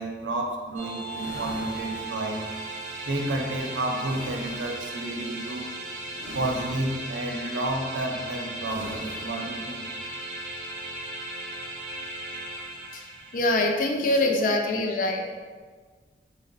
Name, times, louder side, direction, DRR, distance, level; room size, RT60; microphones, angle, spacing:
voice 1, 0.0-2.5 3.0-5.7 6.3-9.8, right 1 dB, 90° right, 1 dB, 0.5 m, -31 dB
sound 1, 0.8-13.8, right 2 dB, 40° right, 0.5 m, -37 dB
sound 2, 1.1-2.7 4.0-4.9 6.1-7.2 8.6-9.6, left 1 dB, 80° left, 0.6 m, -43 dB
voice 2, 13.3-15.2, left 2 dB, 45° left, 2 dB, 0.3 m, -24 dB
3.5 x 2.1 x 3.9 m, 1.5 s
head